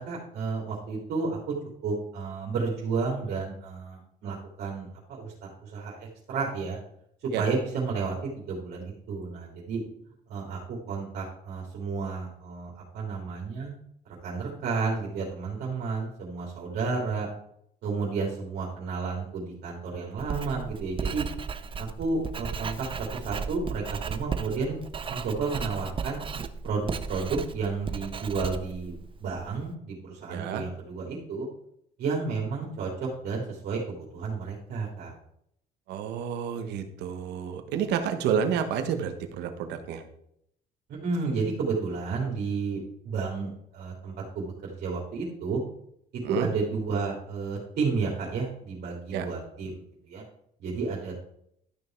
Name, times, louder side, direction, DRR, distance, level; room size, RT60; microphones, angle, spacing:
voice 1, 0.0-1.4 1.8-6.8 7.2-9.8 10.3-13.7 14.2-17.3 17.8-21.2 21.8-24.8 25.1-26.2 26.6-28.9 29.2-31.5 32.0-35.1 40.9-42.8 43.0-45.6 46.3-50.2 50.6-51.3, right 4 dB, 65° right, -4 dB, 3.1 m, -32 dB
Writing, 20.2-29.6, right 5 dB, 30° right, 0.7 m, -35 dB
voice 2, 30.3-30.6 35.9-40.0 46.2-46.5 49.1-49.3, right 8 dB, 85° right, 7 dB, 1.4 m, -29 dB
12.5 x 5.6 x 4.6 m, 0.71 s
cardioid pair, 110°, 17 cm